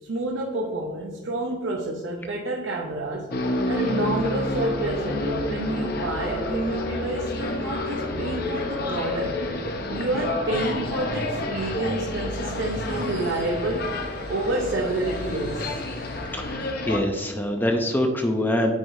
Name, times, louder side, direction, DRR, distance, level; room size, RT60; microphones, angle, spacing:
voice 1, 0.0-3.3 3.7-9.4 9.9-16.4, right 2 dB, 75° right, -1 dB, 0.8 m, -29 dB
sound 1, 3.3-17.0, left 2 dB, 50° left, 0.8 m, -29 dB
voice 2, 16.3-18.7, left 1 dB, 10° left, 3 dB, 0.5 m, -24 dB
9.4 x 4.8 x 2.6 m, 1.4 s
head